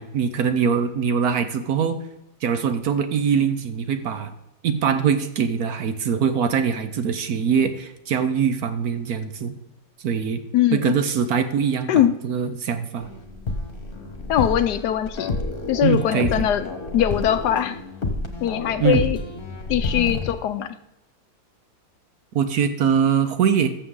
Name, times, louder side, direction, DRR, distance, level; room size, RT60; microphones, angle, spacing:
voice 1, 0.0-2.0 2.4-4.3 4.6-9.6 10.0-10.4 10.7-13.1 15.8-16.5 18.8-19.0 22.3-23.7, right 7 dB, 65° right, 9 dB, 1.1 m, -22 dB
sound 1, 13.0-20.3, left 2 dB, 35° left, 1.2 m, -29 dB
voice 2, 14.3-15.3 15.7-17.8 18.4-19.2 19.7-20.7, left 11 dB, 70° left, 11 dB, 1.1 m, -21 dB
14.0 x 6.7 x 3.7 m, 0.89 s
omnidirectional pair, 2.0 m